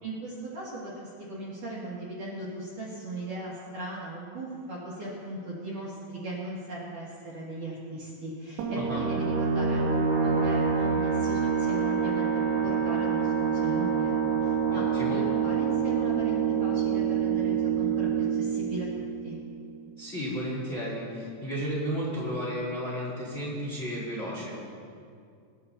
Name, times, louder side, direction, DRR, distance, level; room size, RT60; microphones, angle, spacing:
voice 1, 0.0-14.1 14.4-18.9 19.2-19.4, right 1 dB, 50° right, -8 dB, 3.2 m, -38 dB
sound 1, 8.6-19.9, right 6 dB, 75° right, 4.0 m, -27 dB
voice 2, 14.7-15.2 20.0-24.6, equal, 15° left, -7 dB, 3.3 m, -33 dB
25.0 x 11.5 x 2.9 m, 2.3 s
omnidirectional pair, 5.8 m